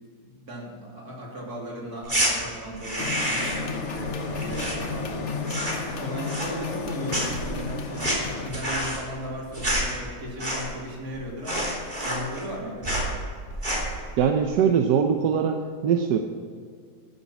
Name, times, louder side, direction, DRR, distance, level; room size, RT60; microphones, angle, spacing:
voice 1, 0.2-12.9, equal, 65° right, -3 dB, 3.4 m, -37 dB
sound 1, 2.0-2.3 2.7-3.7 4.0-5.2 5.4-5.9 6.2-6.8 7.1-10.9 11.1-11.2 11.4-12.5 12.8-13.1 13.5-14.0, right 1 dB, 30° right, 3.4 m, -28 dB
sound 2, 3.0-8.5, left 4 dB, 50° left, 1.3 m, -32 dB
voice 2, 14.2-16.2, right 7 dB, 90° right, 5 dB, 1.4 m, -22 dB
14.0 x 8.4 x 6.0 m, 2.2 s
omnidirectional pair, 1.7 m